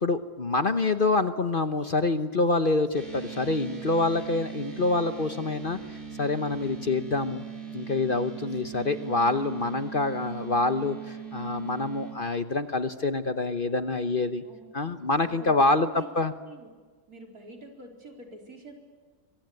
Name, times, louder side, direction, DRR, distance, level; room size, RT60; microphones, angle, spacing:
voice 1, 0.0-7.4 7.7-14.4 14.7-16.3, left 3 dB, 40° left, 9 dB, 1.1 m, -26 dB
sound 1, 2.9-12.1, right 7 dB, 35° right, 4.9 m, -40 dB
voice 2, 14.4-14.7 15.1-16.7 17.1-18.7, right 2 dB, 75° right, 1 dB, 4.8 m, -47 dB
25.0 x 23.5 x 9.5 m, 1.4 s
omnidirectional pair, 1.6 m